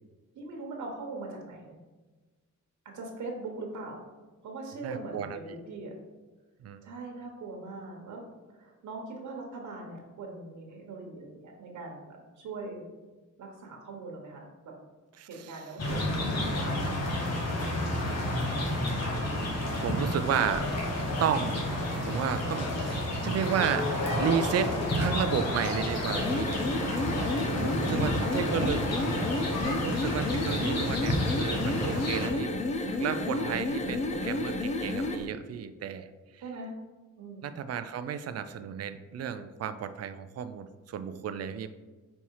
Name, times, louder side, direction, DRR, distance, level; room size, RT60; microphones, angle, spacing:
voice 1, 0.3-1.8 2.9-4.0 4.4-5.9 6.8-8.2 8.5-12.8 13.4-14.7 15.3-17.4 19.7-20.1 21.6-21.8 27.3-29.2 29.6-29.9 33.4-33.6 36.4-36.7 37.2-37.6, right 3 dB, 70° right, 1 dB, 1.3 m, -41 dB
voice 2, 4.8-5.4 6.6-6.8 15.2-15.5 19.8-20.7 21.2-21.7 22.1-23.9 24.2-26.5 27.6-28.8 29.6-32.5 32.9-36.1 36.3-36.4 37.4-41.7, right 8 dB, 55° right, 10 dB, 0.5 m, -32 dB
sound 1, 15.8-32.3, left 1 dB, 55° left, 1.4 m, -31 dB
sound 2, 20.4-29.7, left 2 dB, 80° left, 1.7 m, -36 dB
sound 3, 26.0-35.3, left 2 dB, 25° left, 0.6 m, -31 dB
5.5 x 4.4 x 4.7 m, 1.2 s
wide cardioid pair, 160°, 31 cm